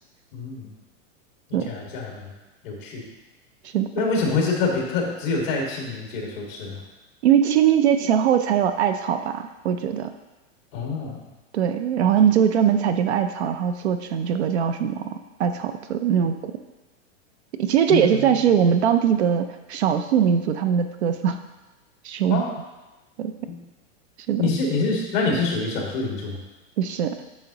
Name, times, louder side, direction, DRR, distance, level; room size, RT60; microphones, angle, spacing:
voice 1, 0.3-0.7 1.5-2.3 2.6-3.0 3.9-6.8 10.7-11.3 17.9-18.3 22.3-22.5 23.5-23.6 24.4-26.4, left 4 dB, 40° left, -1 dB, 1.9 m, -26 dB
voice 2, 7.2-10.1 11.5-16.5 17.6-21.4 22.0-22.4 23.2-23.4 24.3-24.5 26.8-27.2, right 8 dB, 60° right, 9 dB, 0.5 m, -21 dB
8.9 x 6.4 x 2.9 m, 1.1 s
supercardioid pair, 180°, 38 cm